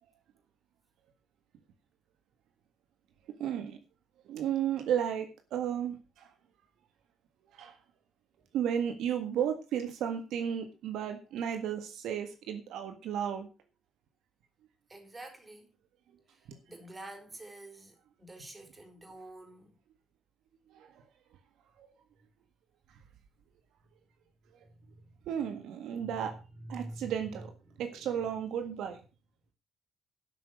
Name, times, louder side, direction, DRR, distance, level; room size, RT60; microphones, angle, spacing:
voice 1, 3.4-3.8 4.2-6.3 7.5-7.8 8.5-13.5 20.7-21.0 21.8-21.9 25.3-26.3 26.7-27.5 27.8-29.0, right 9 dB, 85° right, 1.7 m, -33 dB
voice 2, 14.9-15.7 16.3-19.8 24.6-25.2 26.0-27.1 27.6-28.7, right 1 dB, 25° right, 4.2 m, -48 dB
12.5 x 6.1 x 6.4 m
cardioid pair, 90°, 0 cm